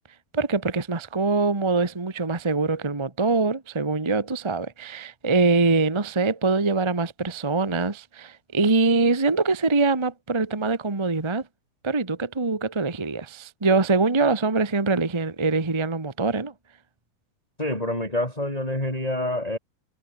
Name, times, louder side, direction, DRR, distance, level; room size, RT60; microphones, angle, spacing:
voice 1, 0.3-11.4 11.8-16.5, right 3 dB, 45° right, 0.3 m, -23 dB
voice 2, 17.6-19.6, left 1 dB, 10° left, 8.0 m, -27 dB
omnidirectional pair, 4.4 m